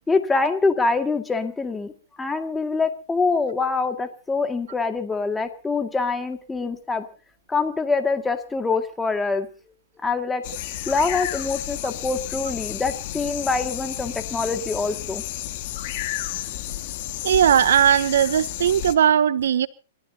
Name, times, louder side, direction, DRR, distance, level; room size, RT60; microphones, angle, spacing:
voice 1, 0.1-1.9 2.2-7.1 7.5-9.5 10.0-10.4 10.9-15.2, left 4 dB, 10° left, 2.1 m, -24 dB
sound 1, 10.4-18.9, left 15 dB, 55° left, 1.8 m, -32 dB
voice 2, 17.2-19.7, right 9 dB, 75° right, 0.7 m, -18 dB
29.0 x 14.0 x 2.8 m
hypercardioid pair, 120°, 0 cm